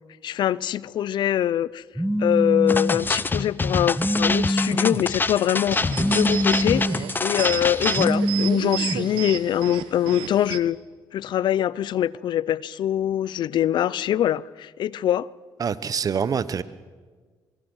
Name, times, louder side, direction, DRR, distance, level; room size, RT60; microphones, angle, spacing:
voice 1, 0.2-1.8 2.2-5.8 6.1-10.8 11.1-15.3, left 11 dB, 65° left, 0.6 m, -23 dB
Telephone, 1.9-3.0 3.9-5.0 5.9-7.0 7.9-9.0, equal, 5° right, 2.0 m, -24 dB
sound 1, 2.7-8.1, left 3 dB, 25° left, 0.8 m, -26 dB
sound 2, 5.4-10.6, right 13 dB, 90° right, 1.3 m, -33 dB
voice 2, 15.6-16.6, right 6 dB, 45° right, 1.1 m, -25 dB
23.5 x 23.0 x 6.4 m
supercardioid pair, 70°, 8 cm